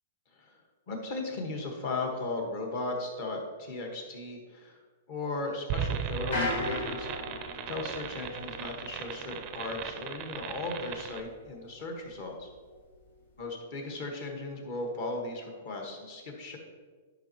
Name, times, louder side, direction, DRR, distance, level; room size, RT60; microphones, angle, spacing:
voice 1, 0.9-4.8 5.1-7.4 7.7-12.5 13.4-16.6, left 2 dB, 40° left, 2 dB, 1.5 m, -36 dB
sound 1, 5.7-11.2, right 8 dB, 25° right, 0.4 m, -37 dB
sound 2, 6.1-11.7 12.1-13.3, left 2 dB, 75° left, 2.4 m, -37 dB
10.5 x 5.3 x 3.0 m, 1.5 s
hypercardioid pair, 165°, 0 cm